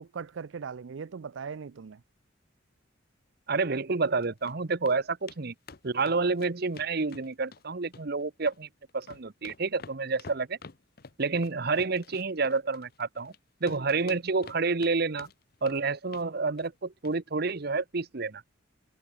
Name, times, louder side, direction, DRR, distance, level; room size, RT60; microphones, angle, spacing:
voice 1, 0.0-2.0, right 6 dB, 70° right, 0.5 m, -39 dB
voice 2, 3.5-5.5 5.8-8.7 8.9-10.6 11.2-13.3 13.6-15.3 15.6-18.4, right 4 dB, 55° right, 0.9 m, -29 dB
sound 1, 4.0-4.5 4.8-5.0 5.3-5.4 5.7-7.6 7.9-8.6 8.9-13.4 13.7-14.9 15.2-15.8 16.1-16.3 16.6-16.8 17.0-17.2 17.5-17.6, left 4 dB, 50° left, 0.9 m, -48 dB
head